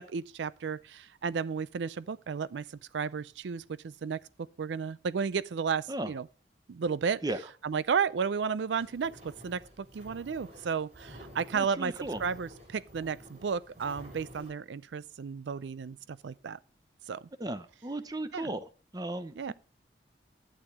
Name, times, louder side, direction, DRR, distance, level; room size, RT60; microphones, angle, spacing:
voice 1, 0.0-2.7 2.9-4.2 4.6-6.3 6.7-7.2 7.6-11.9 12.2-16.6 17.1-17.2 18.3-18.5 19.4-19.5, right 6 dB, 85° right, 0.4 m, -33 dB
sound 1, 8.8-14.5, equal, 40° right, 4.8 m, -51 dB
voice 2, 11.5-12.2 17.4-18.6 18.9-19.5, right 1 dB, 20° right, 0.8 m, -35 dB
11.5 x 9.0 x 3.4 m
head